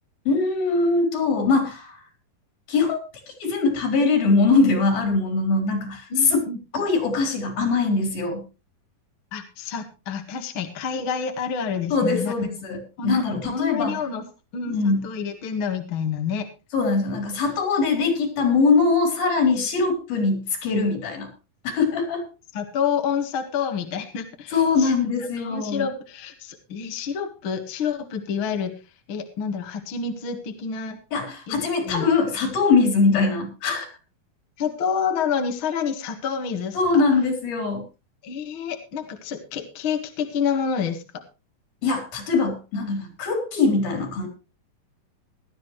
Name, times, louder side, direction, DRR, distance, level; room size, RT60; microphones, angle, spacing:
voice 1, 0.3-2.0 2.7-3.0 3.4-6.4 6.7-8.4 11.9-14.0 14.7-15.1 16.7-21.3 21.6-22.3 24.5-25.9 31.1-33.9 36.8-37.8 41.8-44.3, left 4 dB, 75° left, 5 dB, 5.4 m, -22 dB
voice 2, 6.1-6.6 9.3-12.3 13.0-14.2 14.5-16.5 22.5-24.9 25.4-28.7 29.1-31.0 31.5-32.0 33.1-33.2 34.6-37.0 38.2-41.0, left 6 dB, 45° left, 5 dB, 1.9 m, -28 dB
17.5 x 12.5 x 3.1 m, 0.30 s
omnidirectional pair, 4.3 m